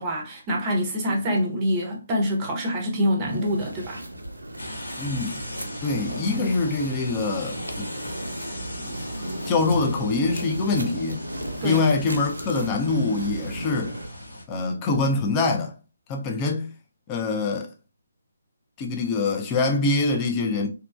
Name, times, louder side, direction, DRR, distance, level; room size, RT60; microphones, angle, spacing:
voice 1, 0.0-4.0 11.6-11.8, equal, 20° right, 0.7 m, -25 dB
sound 1, 3.3-14.1, right 1 dB, 80° right, 0.5 m, -36 dB
sound 2, 4.6-14.4, equal, 85° left, 1.0 m, -37 dB
voice 2, 5.0-5.3 5.8-7.9 8.8-11.2 11.6-13.9 14.5-15.7 16.1-16.7 17.1-17.7 18.8-20.7, left 3 dB, 20° left, 0.5 m, -24 dB
2.9 x 2.2 x 2.3 m
figure-of-eight pair, 140°, 0 cm